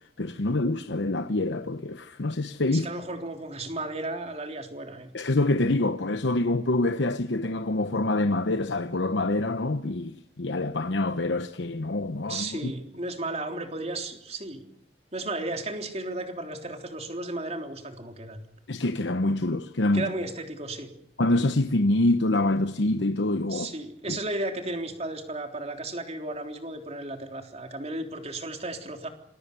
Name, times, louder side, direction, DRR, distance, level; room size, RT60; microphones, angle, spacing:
voice 1, 0.2-2.9 5.1-12.7 18.7-20.1 21.2-23.7 24.1-24.2, left 2 dB, 85° left, 1.0 m, -26 dB
voice 2, 2.7-5.1 12.3-14.7 15.1-18.4 19.9-20.9 23.5-29.1, right 2 dB, 35° right, 3.6 m, -34 dB
27.0 x 21.5 x 7.0 m
head